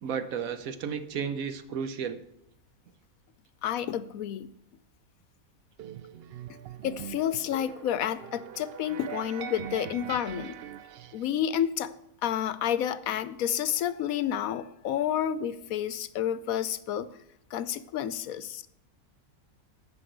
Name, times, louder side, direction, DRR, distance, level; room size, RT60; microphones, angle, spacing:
voice 1, 0.0-2.2, right 7 dB, 70° right, 11 dB, 1.2 m, -33 dB
voice 2, 3.6-4.5 6.8-10.6 11.1-11.9 12.2-17.1 17.5-18.6, left 10 dB, 70° left, 14 dB, 1.0 m, -30 dB
sound 1, 5.8-11.3, right 10 dB, 85° right, 0.5 m, -42 dB
9.6 x 6.2 x 7.9 m, 0.77 s
omnidirectional pair, 1.6 m